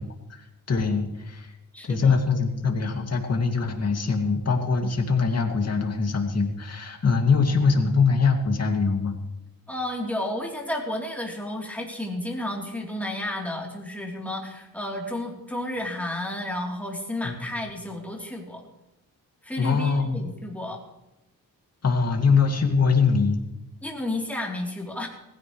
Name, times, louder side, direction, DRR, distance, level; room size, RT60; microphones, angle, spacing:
voice 1, 0.7-1.5 1.9-9.2 17.2-17.4 19.6-20.3 21.8-23.4, left 5 dB, 45° left, 3 dB, 2.4 m, -23 dB
voice 2, 1.7-2.2 9.7-18.6 19.4-20.8 23.8-25.1, left 1 dB, 5° left, -1 dB, 3.4 m, -32 dB
19.0 x 15.5 x 3.2 m, 0.93 s
wide cardioid pair, 100°, 35 cm